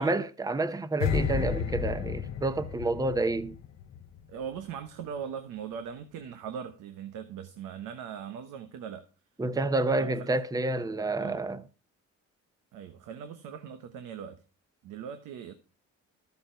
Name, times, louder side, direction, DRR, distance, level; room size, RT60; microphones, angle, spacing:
voice 1, 0.0-3.6 9.4-11.6, right 2 dB, 10° right, 0.7 m, -29 dB
sound 1, 1.0-4.2 4.5-4.7, left 8 dB, 60° left, 0.9 m, -32 dB
voice 2, 4.3-9.1 10.0-10.3 11.2-11.4 12.7-14.4 14.8-15.5, right 7 dB, 90° right, 1.1 m, -40 dB
13.0 x 7.1 x 4.5 m
cardioid pair, 90°, 30 cm